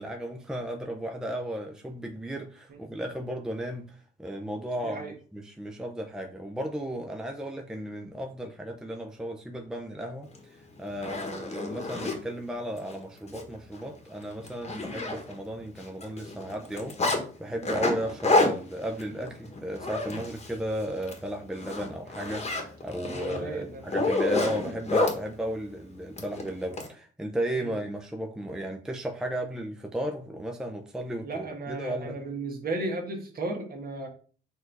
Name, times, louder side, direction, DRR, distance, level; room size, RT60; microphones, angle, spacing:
voice 1, 0.0-32.2, equal, 5° right, 3 dB, 0.5 m, -35 dB
voice 2, 4.8-5.1 14.9-15.0 17.7-17.9 23.0-23.8 27.6-27.7 31.2-34.1, right 2 dB, 50° right, 3 dB, 1.4 m, -35 dB
Zipper (clothing), 10.4-10.5 10.9-12.2 12.8-12.9 13.3-13.4 13.8-13.9 14.2-15.5 15.8-17.2 17.6-20.6 20.9-21.2 21.5-25.2 26.2-26.9, left 2 dB, 30° left, 1.1 m, -29 dB
4.4 x 2.7 x 4.5 m, 0.41 s
cardioid pair, 90°, 20 cm